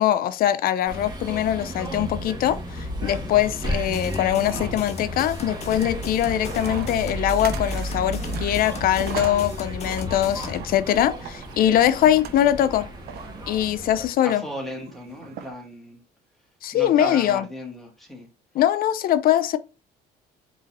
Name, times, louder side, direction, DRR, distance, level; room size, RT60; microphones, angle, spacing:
voice 1, 0.0-12.9 13.5-14.4 16.6-17.5 18.5-19.6, left 11 dB, 60° left, 0.5 m, -22 dB
sound 1, 0.9-14.1, equal, 25° right, 1.5 m, -33 dB
sound 2, 3.8-10.5, left 5 dB, 40° left, 1.0 m, -37 dB
sound 3, 6.3-15.5, right 8 dB, 70° right, 0.6 m, -41 dB
voice 2, 14.2-16.0 16.7-18.3, equal, ahead, 1.6 m, -36 dB
3.9 x 3.1 x 4.1 m
cardioid pair, 110°, 17 cm